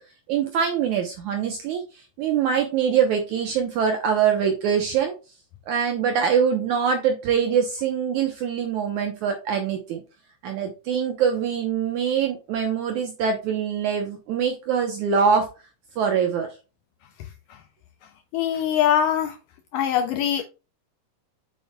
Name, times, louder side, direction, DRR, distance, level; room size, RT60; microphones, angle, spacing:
voice 1, 0.3-1.8 2.2-5.1 5.7-10.0 10.4-15.5 16.0-16.5, right 7 dB, 75° right, 1.8 m, -23 dB
voice 2, 18.3-19.4 19.7-20.4, left 9 dB, 80° left, 1.9 m, -22 dB
7.3 x 6.9 x 2.2 m
omnidirectional pair, 4.5 m